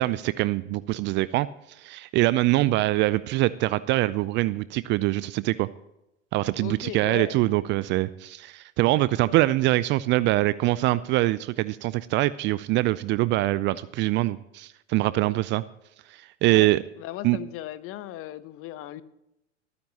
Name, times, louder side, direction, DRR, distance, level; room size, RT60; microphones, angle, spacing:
voice 1, 0.0-5.7 6.3-15.6 16.1-16.8 17.2-17.4, right 17 dB, 35° right, 18 dB, 0.4 m, -24 dB
voice 2, 6.6-7.7 16.4-16.7 17.0-19.0, left 13 dB, 40° left, 15 dB, 0.9 m, -37 dB
22.0 x 9.6 x 2.9 m, 0.84 s
hypercardioid pair, 90°, 35 cm